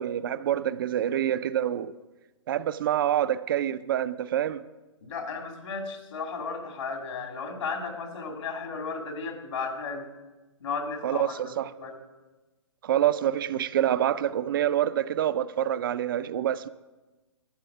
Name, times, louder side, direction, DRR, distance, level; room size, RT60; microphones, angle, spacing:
voice 1, 0.0-1.9 2.5-4.6 11.0-11.7 12.8-16.7, right 11 dB, 45° right, 0.4 m, -26 dB
voice 2, 5.0-10.1 10.6-12.0, left 4 dB, 70° left, 2.2 m, -34 dB
11.5 x 7.7 x 6.0 m
hypercardioid pair, 150°, 16 cm